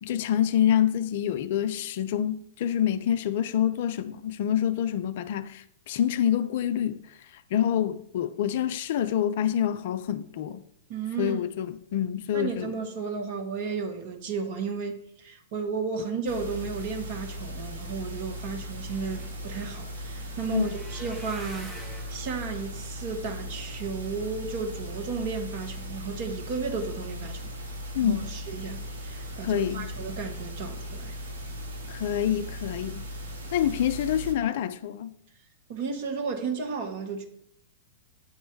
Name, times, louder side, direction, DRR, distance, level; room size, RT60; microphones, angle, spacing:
voice 1, 0.0-7.0 7.5-10.6 11.2-12.7 20.5-20.6 27.9-28.3 29.4-29.9 31.9-33.1 33.5-35.1, left 10 dB, 50° left, 0.4 m, -27 dB
voice 2, 10.9-11.4 12.3-21.8 22.1-27.5 28.0-31.1 35.7-37.3, right 5 dB, 45° right, 1.1 m, -33 dB
sound 1, 16.2-34.3, equal, 70° right, 1.0 m, -38 dB
sound 2, 18.5-24.6 25.1-25.6 26.0-26.2 26.5-26.6, equal, 10° right, 1.4 m, -49 dB
8.2 x 3.1 x 4.5 m
figure-of-eight pair, 105°, 0 cm